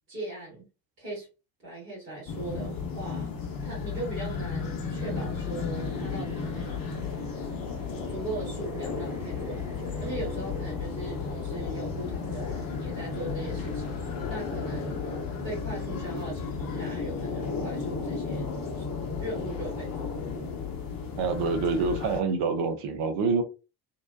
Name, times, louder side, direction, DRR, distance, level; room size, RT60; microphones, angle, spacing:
voice 1, 0.1-0.6 1.0-1.3 1.6-3.3 3.6-6.9 8.1-13.9 14.3-15.0 15.4-18.8 19.2-20.4, right 2 dB, 85° right, 1.2 m, -39 dB
sound 1, 2.3-22.2, left 5 dB, 45° left, 0.8 m, -34 dB
sound 2, 5.4-16.0, right 1 dB, 5° right, 1.2 m, -47 dB
voice 2, 21.2-23.4, right 4 dB, 55° right, 0.7 m, -26 dB
2.7 x 2.1 x 2.2 m
figure-of-eight pair, 45°, 48 cm